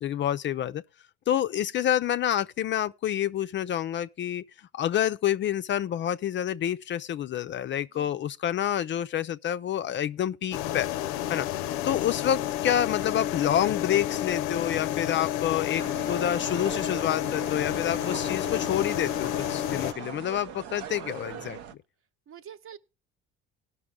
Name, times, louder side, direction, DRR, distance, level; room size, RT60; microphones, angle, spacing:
voice 1, 0.0-0.8 1.3-4.4 4.7-10.9 11.3-11.5 11.8-21.6, left 10 dB, 40° left, 0.4 m, -28 dB
sound 1, 10.5-19.9, left 12 dB, 85° left, 0.6 m, -30 dB
voice 2, 11.6-12.0 22.3-22.8, right 9 dB, 50° right, 0.9 m, -47 dB
sound 2, 15.8-21.7, right 8 dB, 75° right, 0.8 m, -41 dB
18.0 x 6.0 x 3.6 m
supercardioid pair, 95°, 29 cm